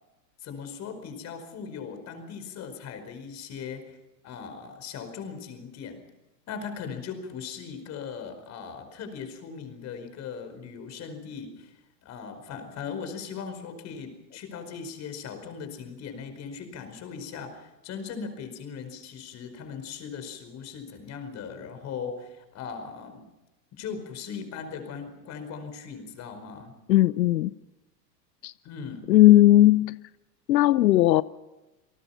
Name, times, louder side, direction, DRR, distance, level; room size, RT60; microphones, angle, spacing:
voice 1, 0.4-4.0 4.2-6.0 6.5-11.8 12.0-23.3 23.7-26.7 28.6-29.2, left 6 dB, 35° left, 5.0 m, -39 dB
voice 2, 26.9-27.5 28.4-28.5 29.1-30.0 30.5-31.2, left 15 dB, 90° left, 0.8 m, -17 dB
28.5 x 19.0 x 5.8 m
hypercardioid pair, 135°, 49 cm